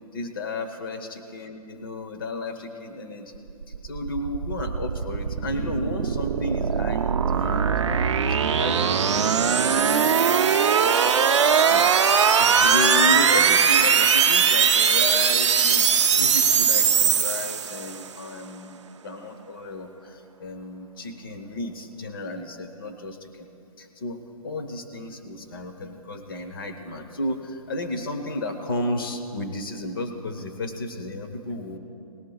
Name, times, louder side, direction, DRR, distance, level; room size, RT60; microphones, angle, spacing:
voice 1, 0.1-3.4 3.8-7.7 8.4-9.3 11.7-15.9 16.1-23.5 23.8-31.8, left 2 dB, 35° left, 6 dB, 1.0 m, -33 dB
sound 1, 3.5-18.0, right 7 dB, 50° right, 0.6 m, -20 dB
19.5 x 17.0 x 2.4 m, 2.7 s
hypercardioid pair, 175°, 19 cm